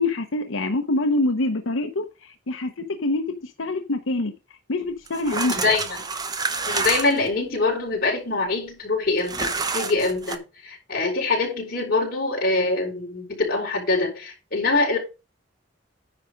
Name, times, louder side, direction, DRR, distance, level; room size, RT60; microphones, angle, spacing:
voice 1, 0.0-4.3 4.7-5.5, left 2 dB, 85° left, 0.9 m, -25 dB
sound 1, 5.1-7.3 9.2-10.4, right 4 dB, 20° right, 0.7 m, -28 dB
voice 2, 5.3-6.1 6.7-15.0, left 3 dB, 50° left, 4.5 m, -24 dB
10.0 x 5.0 x 5.2 m
head